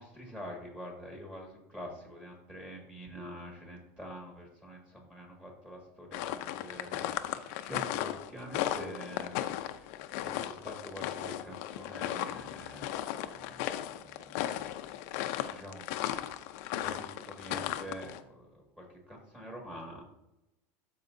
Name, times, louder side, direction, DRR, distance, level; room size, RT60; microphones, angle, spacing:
voice 1, 0.0-9.3 9.6-14.4 15.5-16.2 16.8-20.0, equal, 10° right, -1 dB, 1.9 m, -46 dB
sound 1, 6.1-18.2, left 12 dB, 65° left, 0.5 m, -36 dB
12.5 x 4.6 x 2.7 m, 0.92 s
supercardioid pair, 150°, 9 cm